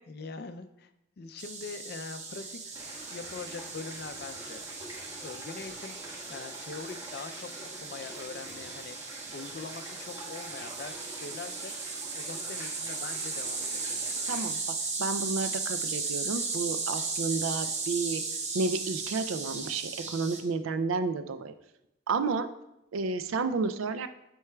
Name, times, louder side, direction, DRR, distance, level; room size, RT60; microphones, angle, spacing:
voice 1, 0.1-0.9 1.2-2.8 3.1-4.7 5.1-6.0 6.3-11.7 12.1-14.1, left 4 dB, 50° left, 8 dB, 0.4 m, -43 dB
sound 1, 1.4-20.4, right 4 dB, 35° right, 0.7 m, -36 dB
sound 2, 2.7-14.5, right 1 dB, 15° right, 1.3 m, -46 dB
voice 2, 14.3-14.6 15.0-18.2 18.5-21.5 22.1-22.5 22.9-24.1, right 4 dB, 80° right, 10 dB, 0.4 m, -31 dB
9.6 x 4.6 x 2.2 m, 0.86 s
head